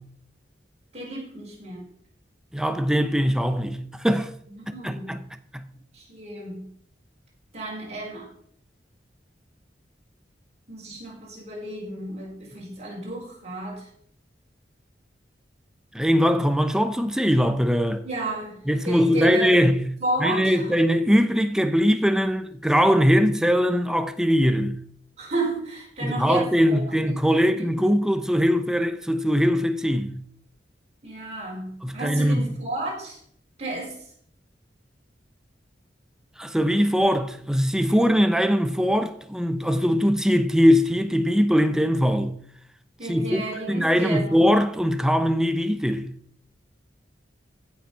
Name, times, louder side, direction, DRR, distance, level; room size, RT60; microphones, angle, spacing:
voice 1, 0.9-1.8 4.5-5.2 5.9-6.7 7.5-8.3 10.7-13.9 18.0-18.6 18.8-19.5 20.0-20.7 25.2-27.1 27.6-27.7 31.0-33.2 33.6-34.0 43.0-44.4, right 2 dB, 40° right, 4.8 m, -32 dB
voice 2, 2.5-4.3 4.8-5.2 5.5-5.6 15.9-18.0 18.7-19.9 20.2-24.8 26.0-30.1 31.8-32.5 36.4-42.3 43.1-43.4 43.7-46.1, equal, 5° right, 0.8 m, -21 dB
15.0 x 6.1 x 5.7 m
head